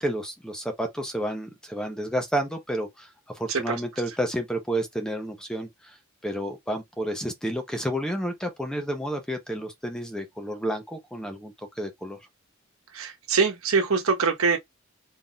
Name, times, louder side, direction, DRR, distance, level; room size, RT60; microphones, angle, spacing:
voice 1, 0.0-3.1 3.3-5.9 6.2-12.2, right 1 dB, 5° left, 0.9 m, -30 dB
voice 2, 3.5-3.8 12.9-14.6, right 5 dB, 85° right, 1.1 m, -24 dB
4.1 x 3.5 x 2.3 m
head